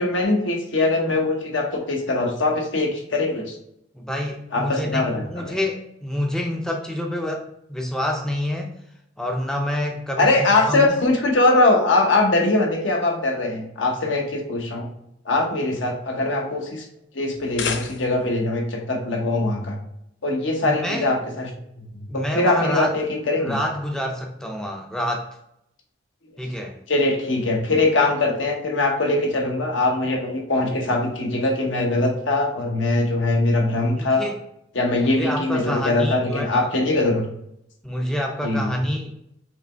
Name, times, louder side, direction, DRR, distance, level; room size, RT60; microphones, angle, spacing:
voice 1, 0.0-3.6 4.5-5.6 10.2-14.9 15.2-16.8 17.1-19.8 20.2-21.5 21.8-21.9 22.1-23.6 26.9-34.2 34.7-37.3 38.4-38.7, left 2 dB, 75° left, 1 dB, 0.9 m, -22 dB
voice 2, 3.9-8.7 9.2-10.9 20.6-21.1 22.1-22.9 23.4-25.3 26.4-26.8 34.0-34.4 35.0-36.7 37.8-39.1, left 1 dB, 5° left, 1 dB, 0.4 m, -27 dB
sound 1, 17.3-18.4, left 6 dB, 60° left, 0.5 m, -31 dB
5.0 x 3.1 x 3.2 m, 0.77 s
head